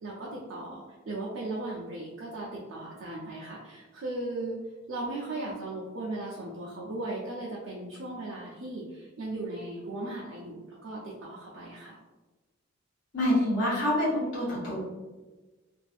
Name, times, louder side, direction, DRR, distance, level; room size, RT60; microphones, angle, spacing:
voice 1, 0.0-4.6 4.9-12.0, right 2 dB, 70° right, -5 dB, 0.5 m, -37 dB
voice 2, 13.1-14.8, left 1 dB, 60° left, -9 dB, 0.8 m, -26 dB
2.5 x 2.4 x 2.4 m, 1.2 s
head